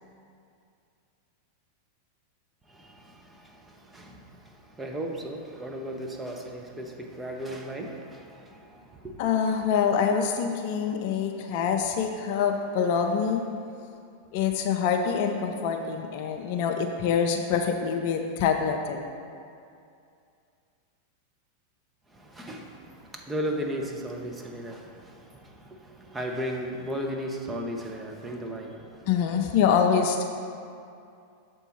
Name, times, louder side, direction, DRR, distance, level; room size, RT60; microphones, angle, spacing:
voice 1, 2.7-9.2 22.1-29.1, equal, 10° right, 0 dB, 0.7 m, -36 dB
voice 2, 9.2-13.4 14.3-19.1 29.1-30.2, left 7 dB, 45° left, 4 dB, 0.4 m, -25 dB
6.9 x 4.4 x 4.3 m, 2.4 s
figure-of-eight pair, 90°, 0 cm